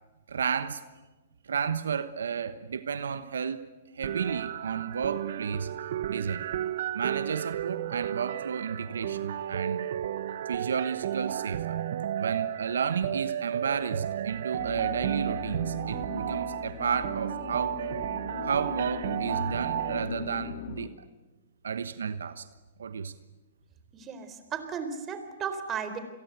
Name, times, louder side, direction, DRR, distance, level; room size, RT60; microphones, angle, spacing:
voice 1, 0.3-0.8 1.4-3.6 3.9-5.7 6.1-6.5 6.9-9.9 10.5-11.8 12.1-17.8 18.4-20.9 21.6-22.5 22.8-23.1, right 6 dB, 85° right, 1.2 m, -32 dB
sound 1, 4.0-20.0, right 10 dB, 65° right, 1.2 m, -33 dB
sound 2, 14.6-20.9, left 9 dB, 55° left, 2.7 m, -40 dB
voice 2, 23.9-26.0, right 6 dB, 25° right, 4.0 m, -35 dB
29.5 x 22.5 x 8.2 m
hypercardioid pair, 135°, 0 cm